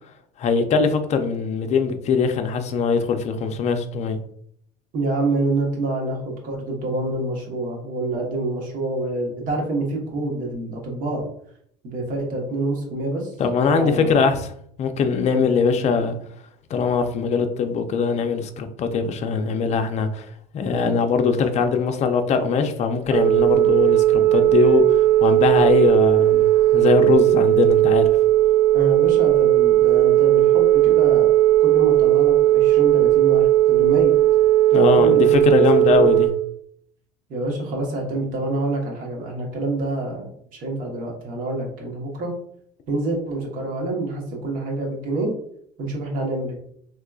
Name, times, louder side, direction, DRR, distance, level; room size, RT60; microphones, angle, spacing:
voice 1, 0.4-4.2 13.4-14.5 14.8-16.2 16.7-20.3 20.5-28.1 34.7-36.3, left 5 dB, 40° left, 0.5 m, -21 dB
voice 2, 4.9-11.2 11.8-13.3 13.6-14.2 15.3-15.8 28.7-31.3 31.6-34.1 34.7-35.6 35.9-36.1 37.3-42.3 42.9-45.3 45.8-46.6, right 2 dB, 55° right, 1.2 m, -27 dB
Telephone, 23.0-36.3, right 14 dB, 35° right, 0.9 m, -16 dB
3.5 x 3.0 x 2.3 m
supercardioid pair, 105°, 17 cm